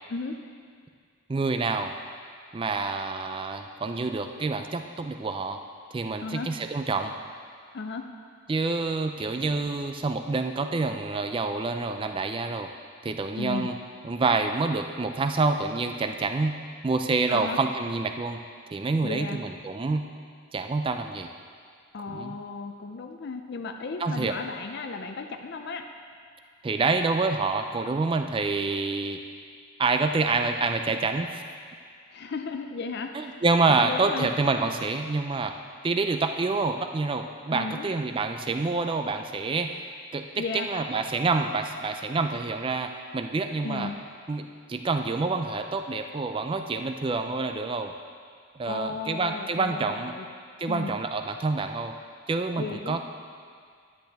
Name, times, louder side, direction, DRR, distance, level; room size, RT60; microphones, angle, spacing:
voice 1, 1.3-1.9 2.5-5.6 5.9-7.1 8.5-12.7 13.0-13.8 14.0-16.6 16.8-18.4 18.7-20.0 20.5-21.3 22.1-22.3 24.0-24.3 26.6-29.2 29.8-31.4 33.1-35.5 35.8-39.7 40.1-43.9 44.3-47.9 48.6-50.1 50.6-51.9 52.3-53.0, right 3 dB, 25° right, 6 dB, 0.3 m, -27 dB
voice 2, 7.7-8.1 13.4-13.7 17.3-17.6 19.0-19.4 21.9-25.9 32.1-34.3 37.5-37.9 40.4-40.7 43.6-43.9 48.7-50.3 50.7-51.0 52.6-53.0, left 4 dB, 50° left, 5 dB, 0.4 m, -35 dB
10.5 x 10.0 x 3.5 m, 2.1 s
head